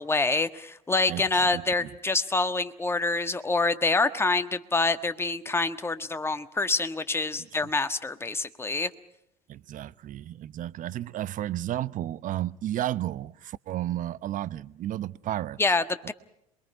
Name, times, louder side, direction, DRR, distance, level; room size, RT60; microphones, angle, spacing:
voice 1, 0.0-8.9 15.6-16.1, left 3 dB, 10° left, 1.4 m, -26 dB
voice 2, 1.5-1.9 9.5-15.6, right 13 dB, 45° right, 0.8 m, -32 dB
28.0 x 22.0 x 5.5 m
hypercardioid pair, 75°, 19 cm